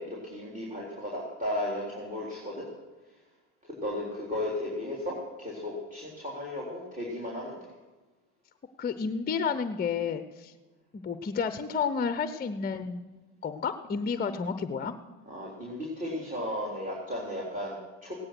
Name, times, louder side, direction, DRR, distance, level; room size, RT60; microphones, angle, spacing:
voice 1, 0.0-2.6 3.8-7.6 15.3-18.2, left 1 dB, 20° right, -5 dB, 3.7 m, -35 dB
voice 2, 8.8-10.5 10.9-13.1 13.4-14.9, left 6 dB, 20° left, 11 dB, 0.8 m, -31 dB
16.5 x 9.8 x 6.0 m, 1.2 s
hypercardioid pair, 85°, 42 cm